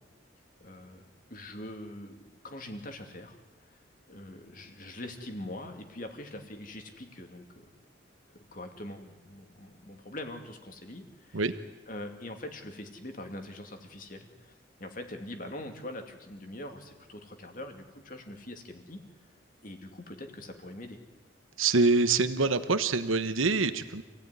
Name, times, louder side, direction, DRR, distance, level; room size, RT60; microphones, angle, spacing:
voice 1, 0.6-3.4 3.7-3.8 4.1-7.7 8.3-11.5 11.9-14.5 14.8-19.0 19.6-21.0, left 1 dB, 45° left, 5 dB, 2.6 m, -43 dB
voice 2, 21.6-24.0, right 3 dB, 90° right, 10 dB, 1.1 m, -25 dB
28.0 x 16.5 x 9.7 m, 1.2 s
head